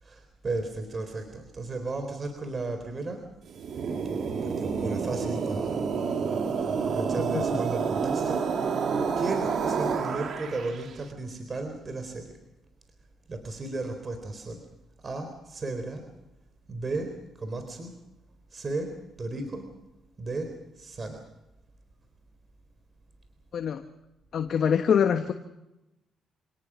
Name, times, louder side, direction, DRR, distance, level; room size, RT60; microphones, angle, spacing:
voice 1, 0.0-3.3 4.4-5.8 6.8-8.4 9.2-12.4 13.3-14.6 15.0-16.0 16.7-17.9 18.5-19.7 20.2-21.2, right 2 dB, 35° right, 6 dB, 4.0 m, -34 dB
sound 1, 3.5-10.9, right 5 dB, 60° right, 2.5 m, -29 dB
voice 2, 24.3-25.3, left 7 dB, 60° left, 7 dB, 1.3 m, -24 dB
27.0 x 18.5 x 6.3 m, 0.94 s
cardioid pair, 90°, 0 cm